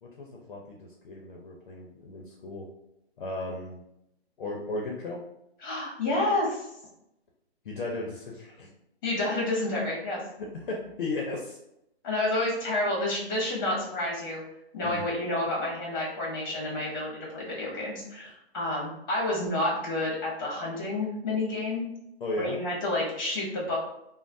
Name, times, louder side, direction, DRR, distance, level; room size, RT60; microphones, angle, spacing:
voice 1, 0.0-2.7 3.2-3.8 4.4-5.2 7.6-8.7 10.4-11.6 14.8-15.1 22.2-22.6, left 2 dB, 50° left, -1 dB, 0.5 m, -35 dB
voice 2, 5.6-6.7 9.0-10.2 12.0-14.4 14.7-21.9 22.4-23.8, left 2 dB, 20° left, -4 dB, 0.8 m, -29 dB
3.0 x 2.0 x 2.6 m, 0.82 s
hypercardioid pair, 165°, 33 cm